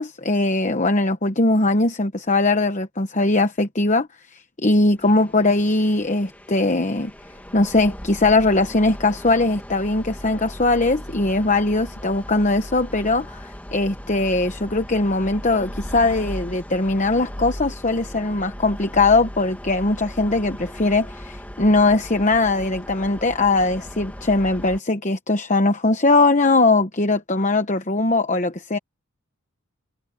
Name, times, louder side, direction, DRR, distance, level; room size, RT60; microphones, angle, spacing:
voice 1, 0.0-7.1 7.5-28.8, left 2 dB, 35° left, 1.0 m, -20 dB
sound 1, 4.9-24.8, equal, 5° left, 2.1 m, -37 dB
head